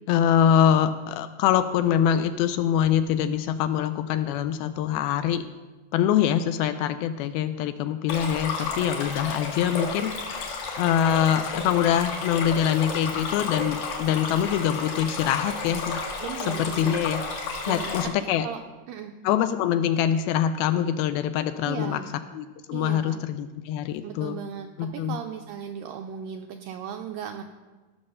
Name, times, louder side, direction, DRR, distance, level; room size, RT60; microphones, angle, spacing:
voice 1, 0.1-5.4 5.9-10.1 10.8-16.0 16.5-17.2 17.7-18.5 19.2-22.0 22.3-24.4 24.8-25.2, left 9 dB, 80° left, 11 dB, 2.3 m, -24 dB
Stream, 8.1-18.0, left 4 dB, 65° left, 3.7 m, -32 dB
voice 2, 16.2-17.0 17.7-18.1 18.4-18.6 18.9-19.1 21.6-22.2 22.7-23.2 24.0-27.4, right 8 dB, 90° right, 4 dB, 2.0 m, -36 dB
17.0 x 6.2 x 6.5 m, 1.3 s
omnidirectional pair, 4.6 m